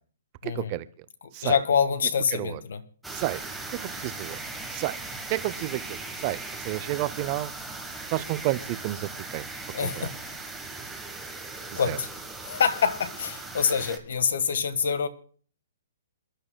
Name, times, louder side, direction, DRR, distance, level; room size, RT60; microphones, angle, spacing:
voice 1, 0.4-0.9 1.3-1.6 2.3-2.6 3.1-3.4 3.7-4.4 4.7-5.0 5.3-6.0 6.2-7.5 8.1-9.5 9.8-10.1 11.7-12.0, right 17 dB, 25° right, 16 dB, 0.5 m, -31 dB
voice 2, 1.4-2.8 9.7-10.2 11.7-12.1 12.4-15.1, left 6 dB, 60° left, 12 dB, 1.4 m, -26 dB
sound 1, 3.0-14.0, right 3 dB, ahead, 1.2 m, -38 dB
28.0 x 11.5 x 2.2 m, 0.44 s
hypercardioid pair, 175°, 0 cm